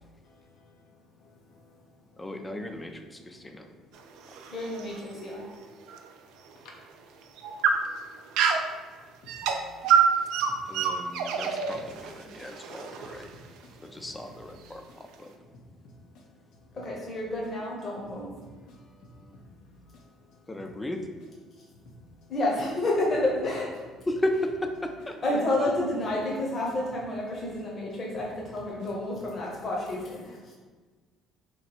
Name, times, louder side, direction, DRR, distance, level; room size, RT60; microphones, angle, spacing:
voice 1, 0.2-0.7 1.2-1.3 13.3-13.4 13.6-14.0 18.4-19.4 24.0-24.1, left 1 dB, 80° left, 0.6 m, -53 dB
voice 2, 2.2-3.7 10.7-13.3 13.8-15.3 20.5-21.1 24.1-25.2, left 1 dB, 15° left, 0.4 m, -34 dB
sound 1, 3.9-6.1 6.5-6.6 7.2-8.8 9.3-13.6, right 6 dB, 80° right, 0.4 m, -27 dB
voice 3, 4.5-5.5 16.7-18.3 22.3-23.8 25.2-30.4, left 1 dB, 35° left, 0.9 m, -30 dB
3.0 x 2.7 x 4.2 m
cardioid pair, 115°, 0 cm